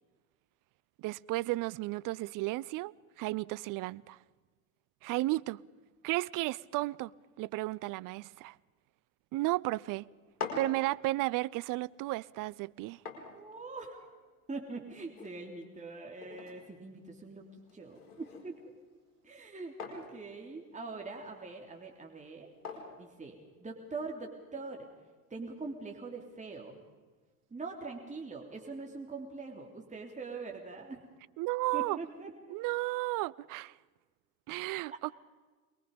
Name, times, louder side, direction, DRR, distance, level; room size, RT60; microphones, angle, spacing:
voice 1, 1.0-4.2 5.0-5.6 6.0-7.1 7.4-8.6 9.3-10.0 10.6-13.0 31.4-32.0 32.5-33.7 34.5-35.1, right 19 dB, 45° right, 0.7 m, -33 dB
sound 1, 10.1-24.0, left 4 dB, 85° left, 4.4 m, -48 dB
voice 2, 13.3-14.1 14.5-17.4 17.7-18.6 19.2-22.5 23.0-24.9 25.3-26.8 27.5-31.0 31.7-32.3, right 3 dB, 15° right, 3.2 m, -43 dB
23.0 x 22.0 x 5.4 m
hypercardioid pair, 75°, 45 cm